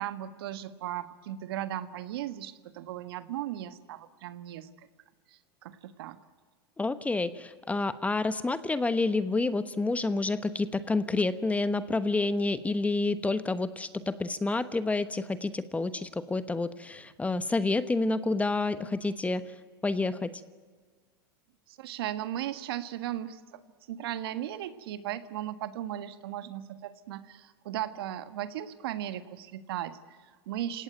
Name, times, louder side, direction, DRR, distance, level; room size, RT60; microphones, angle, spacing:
voice 1, 0.0-4.7 5.3-6.2 21.7-23.6 23.9-30.8, right 12 dB, 75° right, 12 dB, 1.6 m, -37 dB
voice 2, 6.8-19.5 19.8-20.4, left 3 dB, 10° left, 13 dB, 1.1 m, -29 dB
29.0 x 17.5 x 9.2 m, 1.5 s
hypercardioid pair, 110°, 13 cm